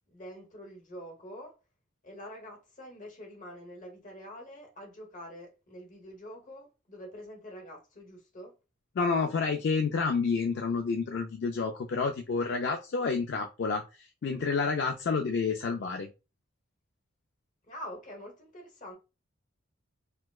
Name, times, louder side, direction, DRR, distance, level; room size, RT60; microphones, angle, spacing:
voice 1, 0.1-1.6 2.0-8.6 17.6-18.9, equal, 40° left, 0.9 m, -46 dB
voice 2, 9.0-16.1, left 4 dB, 55° left, 0.3 m, -29 dB
4.3 x 2.0 x 2.3 m
head